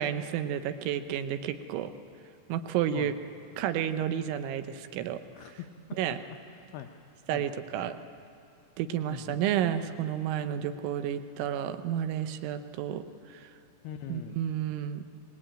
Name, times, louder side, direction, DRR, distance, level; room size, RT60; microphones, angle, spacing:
voice 1, 0.0-1.9 2.5-3.1 3.6-5.2 6.0-6.2 7.3-8.0 8.8-13.1 13.3-13.5 14.1-15.0, right 10 dB, 90° right, 10 dB, 3.3 m, -31 dB
voice 2, 5.3-6.2 6.5-6.9 7.3-7.5 9.0-9.4 13.8-14.4, left 10 dB, 75° left, 5 dB, 2.4 m, -42 dB
24.5 x 20.0 x 8.9 m, 2.6 s
omnidirectional pair, 5.3 m